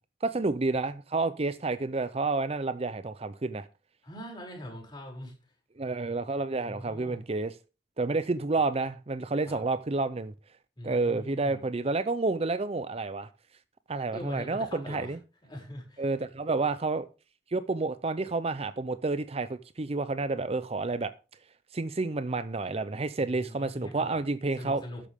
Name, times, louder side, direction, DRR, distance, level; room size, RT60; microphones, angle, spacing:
voice 1, 0.2-3.7 5.8-7.5 8.0-10.3 10.8-13.3 13.9-15.2 16.0-17.1 17.5-21.1 21.7-24.8, right 3 dB, 35° right, 0.6 m, -30 dB
voice 2, 4.0-5.3 6.6-7.2 9.4-9.6 10.8-11.6 14.1-15.2 15.4-16.1 23.2-24.2 24.6-25.0, left 1 dB, 25° left, 6.5 m, -42 dB
13.0 x 10.0 x 3.6 m
head